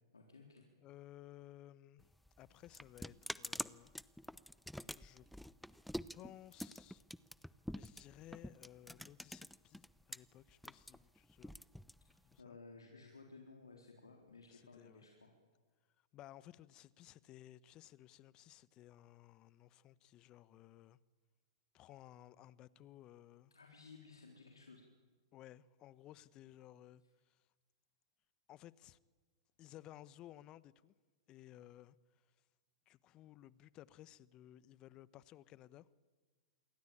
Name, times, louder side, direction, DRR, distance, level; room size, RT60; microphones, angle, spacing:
voice 1, 0.1-0.7 12.4-15.3 23.5-24.8, left 4 dB, 90° left, 4.0 m, -57 dB
voice 2, 0.8-2.0 2.4-3.9 4.9-5.3 6.1-7.0 7.7-11.6 12.2-12.6 14.5-15.0 16.1-21.0 21.7-23.5 25.3-27.4 28.5-29.0 29.6-30.9 31.3-32.0 32.9-35.9, left 13 dB, 35° left, 1.1 m, -58 dB
sound 1, 2.0-10.2 10.5-12.4, equal, ahead, 0.8 m, -47 dB
28.0 x 23.5 x 8.9 m
hypercardioid pair, 105°, 2 cm